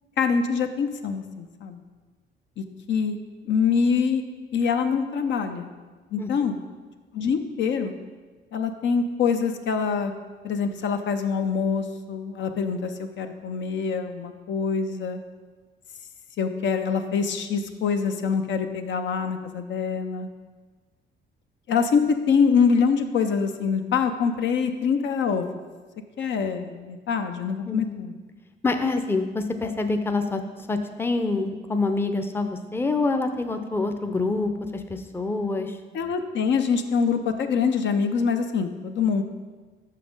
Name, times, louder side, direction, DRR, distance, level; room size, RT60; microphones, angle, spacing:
voice 1, 0.2-1.8 2.6-3.2 3.5-4.2 4.5-5.7 6.1-6.6 7.1-7.9 8.5-10.1 10.4-15.2 16.4-20.3 21.7-25.6 26.2-28.1 35.9-39.2, left 6 dB, 65° left, 7 dB, 0.6 m, -25 dB
voice 2, 27.7-28.0 28.6-30.4 30.7-35.8, left 3 dB, 10° left, 7 dB, 0.6 m, -26 dB
6.2 x 5.8 x 5.2 m, 1.4 s
cardioid pair, 90°, 20 cm